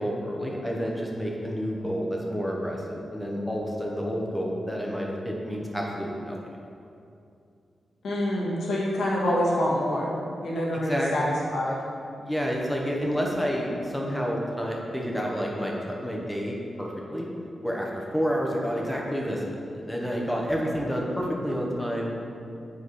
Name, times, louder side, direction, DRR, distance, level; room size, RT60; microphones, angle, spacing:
voice 1, 0.0-6.4 10.7-11.1 12.2-17.3 17.6-22.1, equal, 5° left, -2 dB, 0.9 m, -29 dB
voice 2, 8.0-10.2 10.4-11.8, equal, 80° left, -4 dB, 1.6 m, -26 dB
7.3 x 4.8 x 4.1 m, 2.5 s
wide cardioid pair, 105°, 0 cm